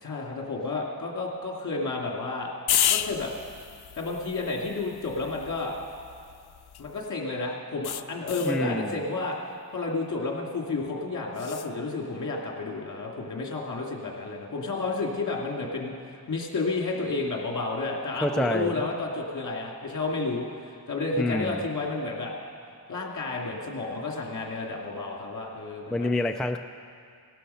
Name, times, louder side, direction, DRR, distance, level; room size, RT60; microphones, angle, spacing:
voice 1, 0.0-2.5 2.9-3.3 4.0-5.7 6.8-9.4 9.7-20.5 20.9-22.3 22.9-26.1, left 3 dB, 50° left, -1 dB, 2.5 m, -31 dB
sound 1, 2.7-7.1 7.8-8.6 11.3-11.7, left 10 dB, 80° left, 0.6 m, -32 dB
voice 2, 8.4-9.0 18.2-18.7 21.2-21.6 25.9-26.6, left 1 dB, ahead, 5 dB, 0.4 m, -27 dB
18.5 x 12.0 x 5.7 m, 2.4 s
wide cardioid pair, 120°, 38 cm